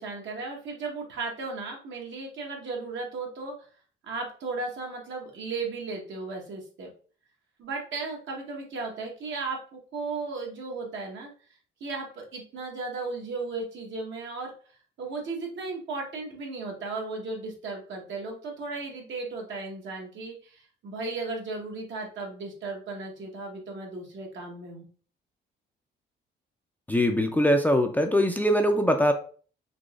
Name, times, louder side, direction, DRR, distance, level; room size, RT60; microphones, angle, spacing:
voice 1, 0.0-3.5 4.0-6.9 7.6-11.3 11.8-14.5 15.0-24.9, right 3 dB, 70° right, 0 dB, 1.2 m, -35 dB
voice 2, 26.9-29.1, equal, 10° left, 5 dB, 0.4 m, -22 dB
3.9 x 2.7 x 2.4 m, 0.42 s
cardioid pair, 90°, 20 cm